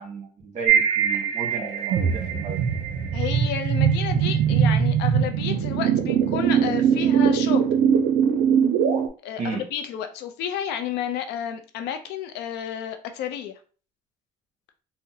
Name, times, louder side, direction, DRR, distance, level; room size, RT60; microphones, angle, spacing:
voice 1, 0.0-2.6 9.4-9.6, right 4 dB, 45° right, 2 dB, 1.1 m, -34 dB
sound 1, 0.7-9.1, right 8 dB, 75° right, 0.5 m, -21 dB
voice 2, 3.1-7.6 9.2-13.6, left 9 dB, 85° left, 7 dB, 0.5 m, -31 dB
3.7 x 2.1 x 2.7 m, 0.39 s
cardioid pair, 110°, 17 cm